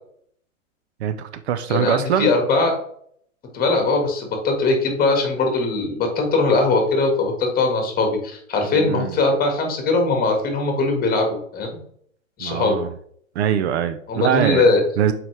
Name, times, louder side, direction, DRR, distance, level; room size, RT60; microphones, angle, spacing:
voice 1, 1.0-2.3 8.7-9.2 12.4-12.9 13.3-14.7 15.0-15.1, right 9 dB, 55° right, 11 dB, 0.7 m, -22 dB
voice 2, 1.7-2.7 3.5-11.7 12.4-12.8 14.1-14.8, left 3 dB, 20° left, 3 dB, 1.8 m, -20 dB
7.2 x 4.8 x 3.3 m, 0.65 s
hypercardioid pair, 120°, 40 cm